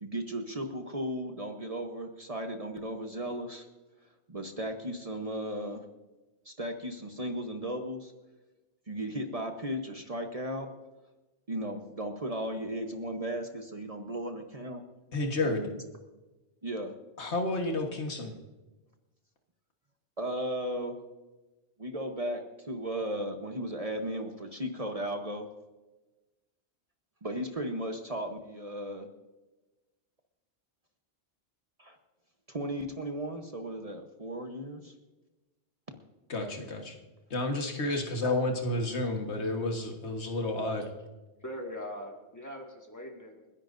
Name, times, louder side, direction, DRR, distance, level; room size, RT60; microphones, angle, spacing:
voice 1, 0.0-3.7 4.3-5.8 6.4-8.1 8.9-10.7 11.5-14.8 15.4-15.7 16.6-16.9 20.2-21.0 21.8-25.5 27.2-29.1 31.8-32.0 32.5-34.9, right 1 dB, 35° right, 4 dB, 1.1 m, -35 dB
voice 2, 15.1-15.7 17.2-18.3 36.3-37.0 37.3-40.9, left 2 dB, 75° left, 3 dB, 1.8 m, -31 dB
voice 3, 41.4-43.5, equal, 15° left, 0 dB, 2.0 m, -42 dB
30.0 x 10.5 x 2.6 m, 1.1 s
omnidirectional pair, 1.1 m